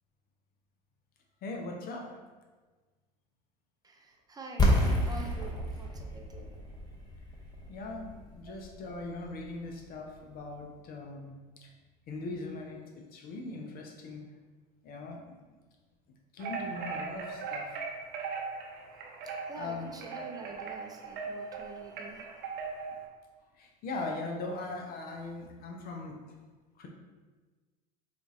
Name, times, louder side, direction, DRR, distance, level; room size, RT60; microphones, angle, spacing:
voice 1, 1.4-2.1 6.1-6.2 7.7-11.7 12.1-14.2 14.8-15.4 16.3-17.8 19.6-19.9 23.6-26.3 26.8-26.9, left 2 dB, 45° left, 1 dB, 0.6 m, -40 dB
voice 2, 3.8-6.5 8.5-8.6 19.5-22.3, right 3 dB, 20° right, 1 dB, 0.6 m, -46 dB
sound 1, 4.6-10.3, equal, 20° left, 0.8 m, -31 dB
sound 2, 16.4-23.0, right 5 dB, 50° right, 0.7 m, -39 dB
4.3 x 2.4 x 2.7 m, 1.3 s
hypercardioid pair, 85°, 21 cm